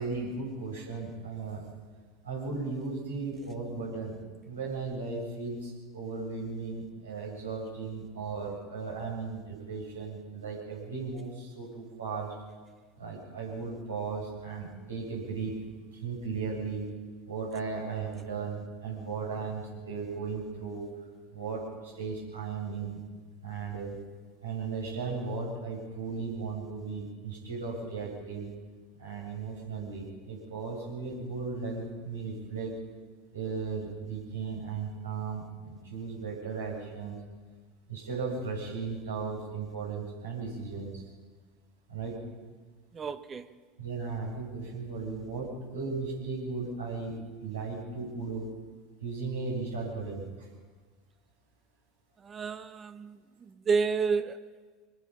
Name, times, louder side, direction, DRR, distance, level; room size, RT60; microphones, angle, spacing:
voice 1, 0.0-1.7 2.2-4.2 4.4-12.3 13.0-15.6 15.9-16.9 17.3-20.9 21.3-23.0 23.4-24.0 24.4-28.5 29.0-32.8 33.3-37.2 37.9-41.1 41.9-42.2 43.8-48.5 49.0-50.5, right 4 dB, 90° right, -4 dB, 7.7 m, -36 dB
voice 2, 42.9-43.5 52.2-53.2 53.7-54.4, right 5 dB, 30° right, 11 dB, 1.2 m, -29 dB
24.5 x 21.0 x 5.7 m, 1.4 s
hypercardioid pair, 80°, 0 cm